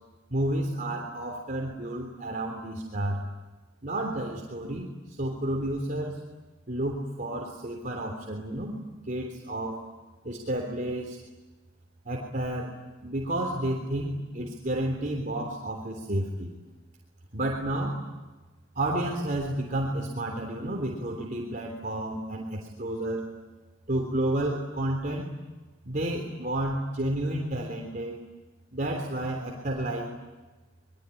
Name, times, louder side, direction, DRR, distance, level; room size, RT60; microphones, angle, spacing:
voice 1, 0.3-3.2 3.8-4.9 5.2-6.2 6.7-8.8 9.1-9.8 10.2-11.2 12.1-12.7 13.0-16.5 17.3-18.0 18.8-23.3 23.9-25.3 25.8-28.1 28.7-30.1, right 1 dB, 45° right, 0 dB, 3.5 m, -31 dB
25.5 x 22.5 x 9.9 m, 1.2 s
head